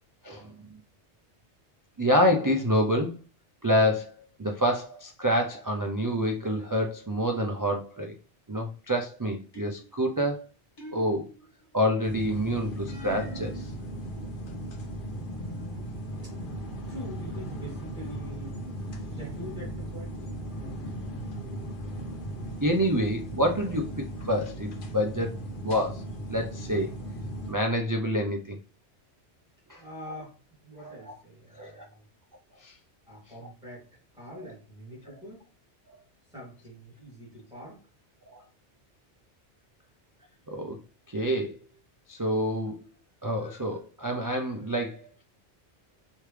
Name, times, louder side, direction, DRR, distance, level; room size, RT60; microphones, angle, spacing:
voice 1, 2.0-3.1 3.6-4.1 4.4-8.1 8.5-10.5 10.9-11.3 11.7-13.7 22.6-23.8 24.2-25.3 25.6-26.0 26.3-26.9 27.5-28.6 29.7-29.8 30.8-30.9 31.6-31.9 32.6-32.7 40.5-40.8 41.1-41.5 42.1-42.8 43.2-45.2, equal, 35° right, 1 dB, 0.3 m, -27 dB
sound 1, 9.5-10.0 10.8-11.6 12.9-13.7, right 1 dB, 20° left, 1.3 m, -44 dB
sound 2, 12.0-27.5, right 1 dB, 55° left, 0.9 m, -37 dB
voice 2, 15.0-15.9 16.2-16.3 16.9-18.6 19.2-20.2 29.7-30.4 30.6-32.0 33.1-33.9 34.1-35.4 36.3-37.8, equal, 5° right, -6 dB, 2.5 m, -44 dB
4.8 x 3.1 x 3.3 m, 0.34 s
omnidirectional pair, 1.2 m